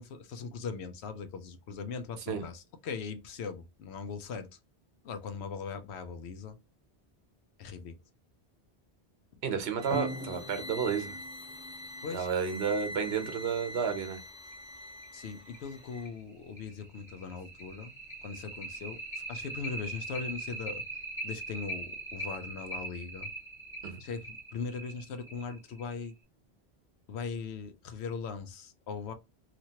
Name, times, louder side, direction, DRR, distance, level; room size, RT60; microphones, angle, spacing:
voice 1, 0.0-4.5 5.0-6.6 7.6-8.0 12.0-12.3 15.1-17.9 18.2-20.8 21.2-23.3 24.0-26.1 27.1-29.1, left 5 dB, 85° left, 0.9 m, -40 dB
voice 2, 9.4-11.2 12.1-14.2 23.8-24.0, right 6 dB, 75° right, 1.0 m, -31 dB
sound 1, 9.8-16.1, left 1 dB, 5° right, 0.5 m, -44 dB
sound 2, 9.9-13.1 14.5-14.6 15.0-15.1 15.5-15.6 16.0-26.1, right 2 dB, 30° left, 1.2 m, -41 dB
3.0 x 2.4 x 2.7 m
omnidirectional pair, 1.1 m